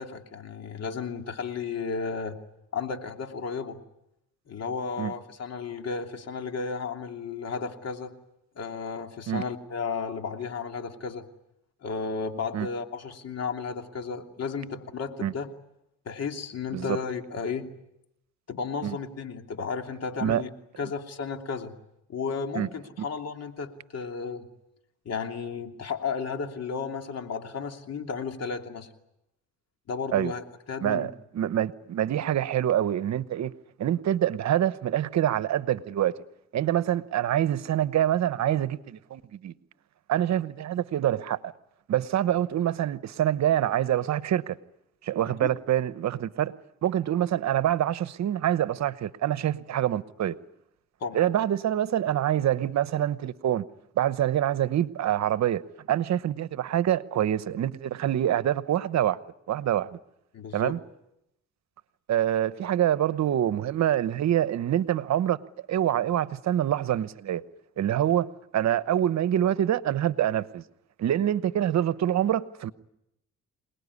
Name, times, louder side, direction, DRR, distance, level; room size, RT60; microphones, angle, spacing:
voice 1, 0.0-2.4 2.7-3.8 4.5-8.1 8.6-11.3 11.8-15.5 16.0-17.7 18.5-20.5 20.8-21.7 22.1-24.5 25.0-28.9 29.9-31.1 45.2-45.5 51.0-51.2 60.3-60.8, left 5 dB, 55° left, 3.0 m, -33 dB
voice 2, 30.8-33.5 33.8-36.1 36.5-39.5 40.1-41.4 41.9-44.6 45.0-46.5 46.8-50.3 51.1-53.6 54.0-55.6 55.9-59.2 59.5-60.0 60.5-60.8 62.1-65.4 65.7-67.4 67.8-70.6 71.0-72.7, right 11 dB, 65° right, 1.0 m, -26 dB
27.5 x 19.5 x 9.8 m
cardioid pair, 90°, 30 cm